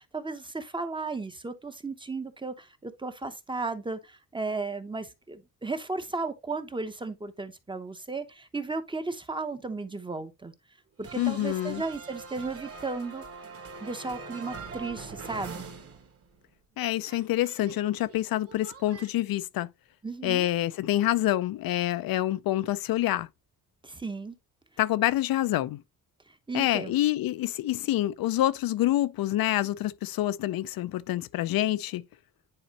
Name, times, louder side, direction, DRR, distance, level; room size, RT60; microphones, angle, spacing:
voice 1, 0.0-10.5 11.0-13.2 13.8-15.7 20.0-20.5 23.8-24.3 26.3-27.0, right 3 dB, 15° right, 0.8 m, -35 dB
sound 1, 11.0-16.5 16.8-19.1, right 4 dB, 40° right, 1.6 m, -43 dB
voice 2, 11.2-11.8 16.8-19.7 20.2-23.3 24.8-25.8 26.5-32.0, left 14 dB, 70° left, 0.5 m, -27 dB
9.8 x 4.3 x 2.9 m
cardioid pair, 130°, 36 cm